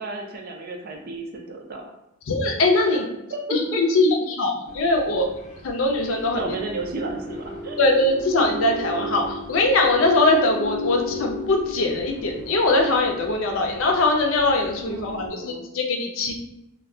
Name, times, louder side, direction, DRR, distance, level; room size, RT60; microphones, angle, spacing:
voice 1, 0.0-1.8 2.9-3.0 3.3-3.8 6.3-7.8 14.8-15.6, right 2 dB, 50° right, 2 dB, 0.5 m, -33 dB
voice 2, 2.3-3.1 3.5-5.3 5.6-6.6 7.8-16.3, left 2 dB, 80° left, 2 dB, 0.5 m, -21 dB
sound 1, 4.7-15.3, left 2 dB, 35° left, 0.5 m, -35 dB
2.3 x 2.3 x 3.7 m, 0.85 s
head